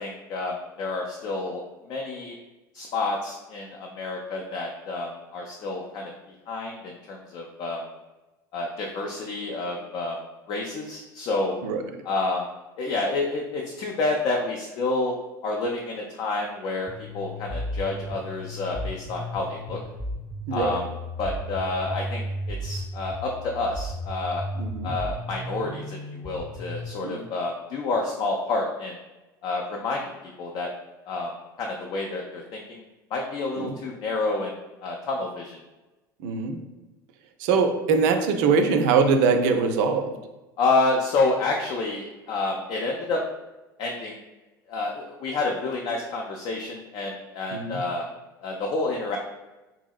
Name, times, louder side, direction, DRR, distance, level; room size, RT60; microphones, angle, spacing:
voice 1, 0.0-1.6 1.9-2.4 2.7-6.1 6.5-7.8 8.5-10.2 10.5-11.5 12.0-12.5 12.8-15.1 15.4-16.9 17.1-19.8 20.5-20.8 21.2-24.4 24.8-28.9 29.4-30.0 30.4-30.7 31.1-31.3 31.6-32.8 33.1-34.5 34.8-35.6 40.6-43.2 43.8-44.1 44.7-48.0 48.4-49.2, left 3 dB, 45° left, 0 dB, 0.4 m, -29 dB
sound 1, 16.9-26.9, equal, 15° left, 0.8 m, -34 dB
voice 2, 20.5-20.8 24.6-24.9 27.0-27.2 33.6-33.8 36.2-36.6 37.4-40.1 47.5-47.8, right 5 dB, 60° right, 6 dB, 0.4 m, -22 dB
2.9 x 2.7 x 2.3 m, 1.1 s
figure-of-eight pair, 70°, 11 cm